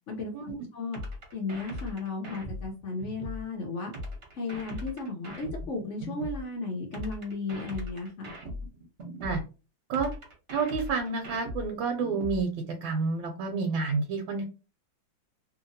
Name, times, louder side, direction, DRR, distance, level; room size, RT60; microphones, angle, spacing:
voice 1, 0.1-1.0 1.3-3.9 4.3-8.3, left 3 dB, 75° left, 1 dB, 0.6 m, -35 dB
sound 1, 0.9-3.4 3.9-6.4 6.9-9.4 9.9-12.4, left 1 dB, 45° right, 0.9 m, -39 dB
voice 2, 10.5-12.5 12.8-14.4, right 4 dB, 80° right, 3 dB, 1.3 m, -29 dB
2.8 x 2.8 x 2.6 m, 0.32 s
omnidirectional pair, 2.2 m